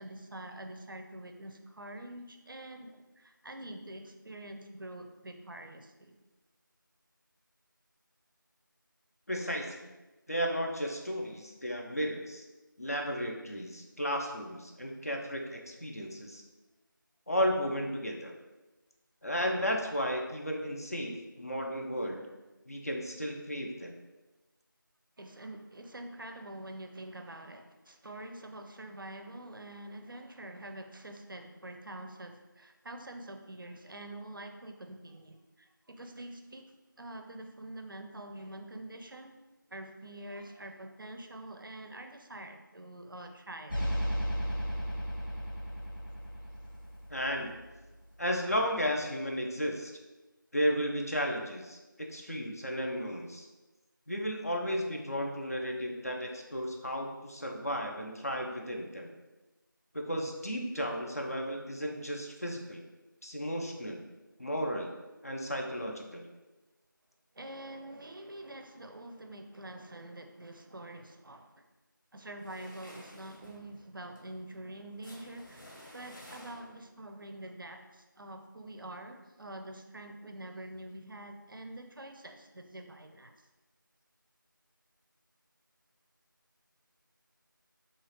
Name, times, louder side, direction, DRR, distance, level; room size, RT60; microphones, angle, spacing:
voice 1, 0.0-6.2 25.2-36.7 37.0-39.3 39.7-43.9 67.3-71.6 72.1-75.6 75.9-83.3, right 1 dB, 75° right, 6 dB, 0.4 m, -46 dB
voice 2, 9.3-9.8 10.3-12.4 12.8-16.4 17.3-18.3 19.2-22.2 22.7-23.9 47.1-47.5 48.2-49.9 50.5-53.5 54.1-59.1 59.9-62.8 63.2-64.0 64.4-64.9 65.2-66.2, equal, 45° left, 1 dB, 0.4 m, -34 dB
sound 1, 43.7-48.0, equal, 85° left, 1.2 m, -35 dB
sound 2, 72.4-77.0, equal, 70° left, 0.9 m, -53 dB
2.8 x 2.4 x 2.9 m, 1.1 s
figure-of-eight pair, 175°, 11 cm